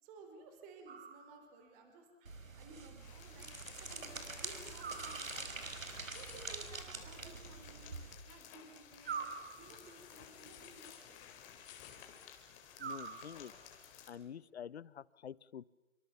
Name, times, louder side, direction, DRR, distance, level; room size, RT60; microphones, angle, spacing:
voice 1, 0.0-3.5 3.8-5.5 6.1-8.0 8.3-9.3 9.6-11.3, right 3 dB, 20° right, 5 dB, 4.9 m, -57 dB
sound 1, 0.9-1.7 4.8-5.8 9.0-10.1 12.8-13.8, right 6 dB, 50° right, 2.5 m, -46 dB
sound 2, 2.3-8.2, right 4 dB, 85° right, 5.3 m, -46 dB
sound 3, 3.0-14.1, left 9 dB, 20° left, 4.0 m, -55 dB
voice 2, 12.8-13.5 14.1-15.6, left 8 dB, 55° left, 21 dB, 1.0 m, -48 dB
29.5 x 26.0 x 7.2 m, 1.0 s
hypercardioid pair, 155°, 39 cm